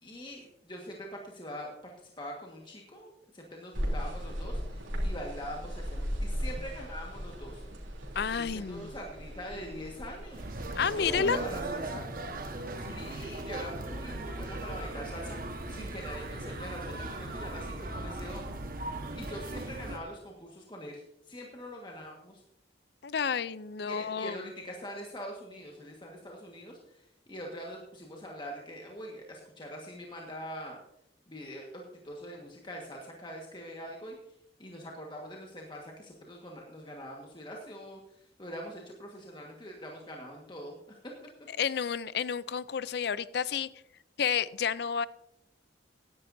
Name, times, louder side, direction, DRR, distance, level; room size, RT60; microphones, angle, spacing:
voice 1, 0.0-7.6 8.3-12.1 12.8-18.5 19.1-22.4 23.8-30.8 31.3-34.3 34.6-41.1, equal, 25° left, 0 dB, 1.5 m, -43 dB
sound 1, 3.7-11.6, equal, 90° right, 3.2 m, -37 dB
voice 2, 8.2-8.9 10.7-11.4 23.0-24.4 41.6-43.7 44.2-45.1, left 7 dB, 60° left, 17 dB, 0.4 m, -30 dB
sound 2, 10.3-20.0, right 2 dB, 50° right, 1.3 m, -38 dB
16.5 x 11.0 x 2.7 m, 0.79 s
head